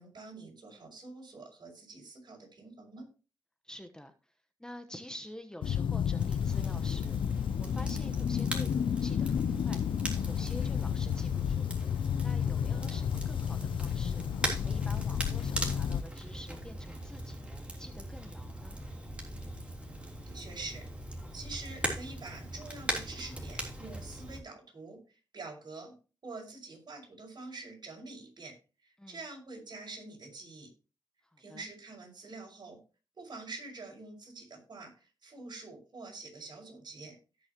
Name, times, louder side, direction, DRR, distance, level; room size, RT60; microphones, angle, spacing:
voice 1, 0.0-3.1 20.3-20.8 21.3-25.0 25.3-25.9 26.2-28.5 28.8-30.7 31.4-32.8 33.2-37.2, right 3 dB, 60° right, 1 dB, 5.9 m, -46 dB
voice 2, 3.6-4.1 4.6-7.3 7.6-9.8 10.2-11.7 12.2-14.2 14.6-18.8 29.0-29.2 31.2-31.7, left 1 dB, 10° left, 7 dB, 1.1 m, -48 dB
sound 1, 5.6-16.0, left 8 dB, 90° left, 0.4 m, -31 dB
Crackle, 6.2-24.4, right 1 dB, 15° right, 3.4 m, -40 dB
17.0 x 6.5 x 3.0 m, 0.32 s
cardioid pair, 80°, 8 cm